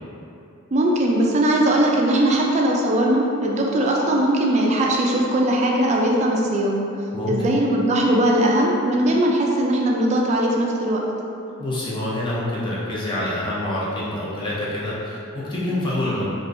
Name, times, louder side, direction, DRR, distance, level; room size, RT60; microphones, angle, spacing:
voice 1, 0.7-6.7 7.3-11.0, right 1 dB, 30° right, -1 dB, 0.3 m, -19 dB
voice 2, 11.6-16.2, left 1 dB, 20° left, -8 dB, 0.6 m, -26 dB
3.4 x 2.5 x 2.5 m, 2.7 s
head